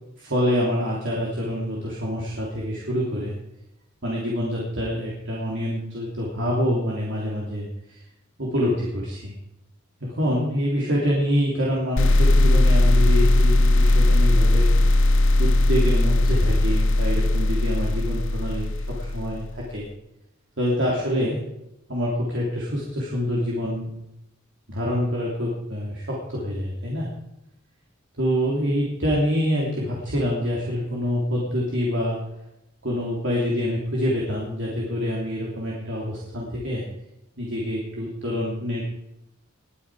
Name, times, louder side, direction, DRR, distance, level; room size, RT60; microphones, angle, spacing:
voice 1, 0.2-3.4 4.0-8.0 8.4-9.3 10.0-14.7 15.4-19.8 20.6-21.4 21.9-23.9 24.7-27.1 28.2-32.2 32.8-36.9 37.4-38.8, equal, 60° right, -4 dB, 3.3 m, -26 dB
sound 1, 12.0-19.5, left 2 dB, 65° left, 0.7 m, -18 dB
21.0 x 9.5 x 4.9 m, 0.86 s
head